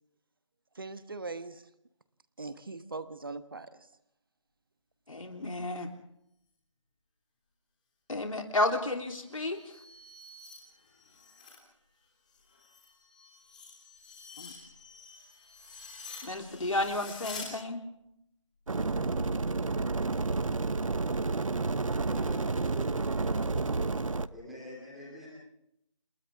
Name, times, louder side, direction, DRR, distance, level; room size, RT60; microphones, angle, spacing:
voice 1, 0.7-1.7 2.4-3.9, right 3 dB, 45° right, 11 dB, 1.3 m, -41 dB
voice 2, 5.1-5.9 8.1-9.6 14.4-14.5 16.2-17.8, left 2 dB, 85° left, 2 dB, 3.4 m, -32 dB
sound 1, 9.2-11.6 12.0-17.5, left 4 dB, 15° left, 3.4 m, -48 dB
sound 2, 18.7-24.3, right 3 dB, 80° right, 1.0 m, -30 dB
voice 3, 22.1-22.9 23.2-25.3, equal, ahead, -6 dB, 2.9 m, -47 dB
29.0 x 27.0 x 3.6 m, 0.79 s
figure-of-eight pair, 175°, 17 cm